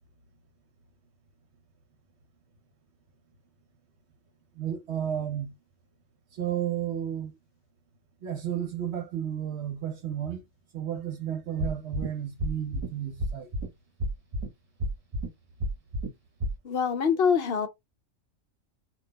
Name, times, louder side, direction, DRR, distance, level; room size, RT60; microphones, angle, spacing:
voice 1, 4.6-5.5 6.3-7.3 8.2-10.4 10.7-13.5, right 10 dB, 60° right, 0.8 m, -32 dB
sound 1, 11.6-12.1 12.4-12.9 13.2-13.7 14.0-14.5 14.8-15.3 15.6-16.1 16.4-16.5, equal, 30° right, 1.0 m, -29 dB
voice 2, 16.6-17.7, left 6 dB, 55° left, 0.7 m, -24 dB
3.8 x 2.3 x 3.9 m
omnidirectional pair, 1.4 m